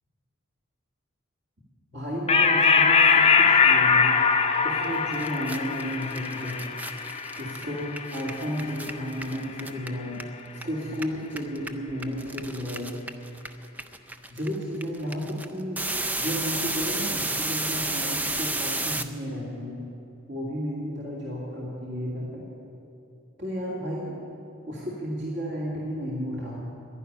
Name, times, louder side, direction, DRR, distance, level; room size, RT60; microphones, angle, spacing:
voice 1, 1.9-4.2 4.6-6.6 7.4-10.3 10.5-13.0 14.3-15.8 16.2-19.8 20.3-22.4 23.4-24.2 24.7-26.6, equal, 55° right, -5 dB, 2.3 m, -33 dB
sound 1, 2.3-9.2, left 5 dB, 30° left, 0.7 m, -22 dB
sound 2, 4.8-4.9 5.1-10.6 10.9-19.0, right 2 dB, 10° right, 0.4 m, -31 dB
11.0 x 11.0 x 10.0 m, 2.7 s
head